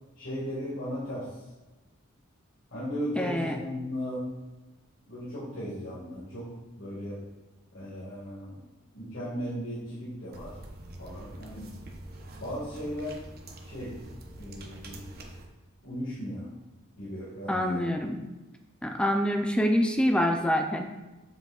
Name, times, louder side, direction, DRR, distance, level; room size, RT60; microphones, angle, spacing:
voice 1, 0.2-1.4 2.7-4.3 5.1-7.2 7.7-8.6 8.9-10.6 11.0-11.7 12.4-13.2 13.6-14.0 14.4-15.1 15.8-16.5 17.0-17.8, equal, 65° left, -8 dB, 1.8 m, -36 dB
voice 2, 3.2-3.6 17.5-18.2 18.8-20.8, equal, 5° left, 4 dB, 0.4 m, -26 dB
sound 1, 10.3-15.5, right 1 dB, 50° right, 0.8 m, -45 dB
7.4 x 6.2 x 2.4 m, 1.1 s
head